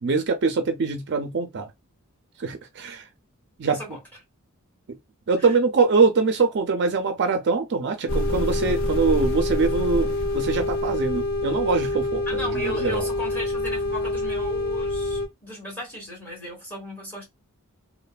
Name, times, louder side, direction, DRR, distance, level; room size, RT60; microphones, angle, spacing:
voice 1, 0.0-1.7 2.4-3.1 3.6-3.8 5.3-13.1, right 4 dB, 55° right, 0.5 m, -23 dB
voice 2, 3.7-4.0 5.4-5.5 12.3-17.2, equal, 10° left, 2.0 m, -35 dB
sound 1, 8.1-15.3, left 2 dB, 65° left, 0.7 m, -26 dB
3.1 x 2.1 x 2.2 m
head